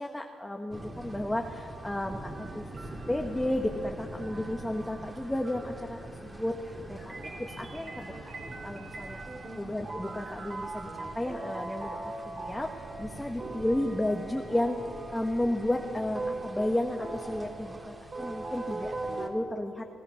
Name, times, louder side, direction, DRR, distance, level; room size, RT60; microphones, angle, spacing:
voice 1, 0.0-2.7 3.1-7.0 7.4-8.1 8.4-9.2 9.6-12.0 12.2-14.8 15.1-19.8, left 1 dB, 10° left, 2 dB, 1.6 m, -33 dB
sound 1, 0.7-19.3, right 1 dB, 20° right, 3.3 m, -45 dB
sound 2, 2.4-3.6 4.2-19.3, right 2 dB, 40° right, 3.7 m, -41 dB
29.5 x 18.0 x 7.2 m, 2.6 s
cardioid pair, 90°, 0 cm